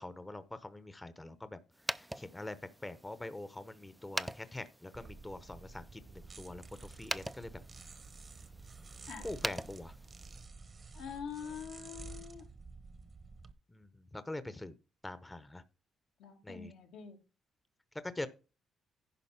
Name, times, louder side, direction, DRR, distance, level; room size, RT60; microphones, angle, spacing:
voice 1, 0.0-1.6 1.9-2.6 2.8-7.5 9.2-10.0 13.7-14.7 15.0-15.6 16.4-16.7 18.0-18.3, left 2 dB, 15° left, 0.8 m, -44 dB
sound 1, 1.7-10.4, right 1 dB, 5° right, 0.5 m, -44 dB
sound 2, 4.9-13.5, right 4 dB, 40° right, 1.1 m, -51 dB
voice 2, 10.9-12.5 16.2-17.2, left 7 dB, 90° left, 2.2 m, -45 dB
11.0 x 4.9 x 5.8 m
cardioid pair, 90°, 0 cm